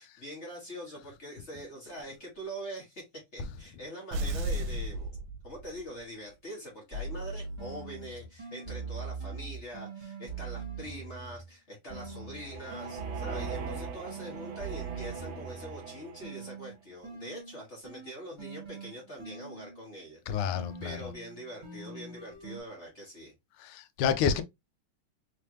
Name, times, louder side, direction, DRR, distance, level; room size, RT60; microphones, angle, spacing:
voice 1, 0.0-3.0 3.3-5.2 5.4-23.3, right 1 dB, 35° left, 1.5 m, -44 dB
sound 1, 4.1-6.0, right 1 dB, 80° right, 1.4 m, -33 dB
sound 2, 6.9-11.5 11.9-15.9 16.2-19.9 20.5-22.6, right 4 dB, 25° right, 1.6 m, -42 dB
sound 3, 12.0-16.6, right 5 dB, 60° right, 1.4 m, -42 dB
voice 2, 20.3-21.0 23.6-24.4, left 7 dB, 85° left, 1.5 m, -29 dB
3.8 x 3.3 x 2.8 m
omnidirectional pair, 2.4 m